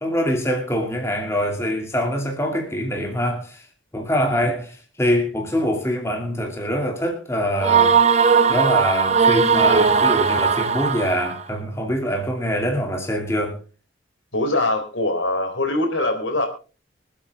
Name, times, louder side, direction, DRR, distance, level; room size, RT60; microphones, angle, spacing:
voice 1, 0.0-3.6 3.9-8.0 8.5-13.6, equal, 15° left, 2.5 m, -24 dB
sound 1, 7.6-11.4, right 5 dB, 35° right, 0.8 m, -18 dB
voice 2, 14.3-16.5, left 2 dB, 85° left, 3.6 m, -22 dB
25.0 x 8.4 x 3.5 m
head